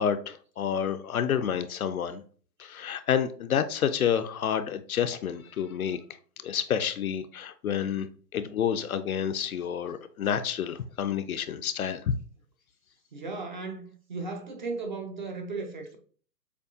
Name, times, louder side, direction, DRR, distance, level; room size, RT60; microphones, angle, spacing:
voice 1, 0.0-2.2 2.6-6.0 6.4-8.1 8.3-12.1, left 8 dB, 60° left, 0.5 m, -29 dB
voice 2, 13.1-16.0, right 3 dB, 30° right, 0.6 m, -36 dB
7.0 x 2.3 x 2.4 m
figure-of-eight pair, 130°, 50 cm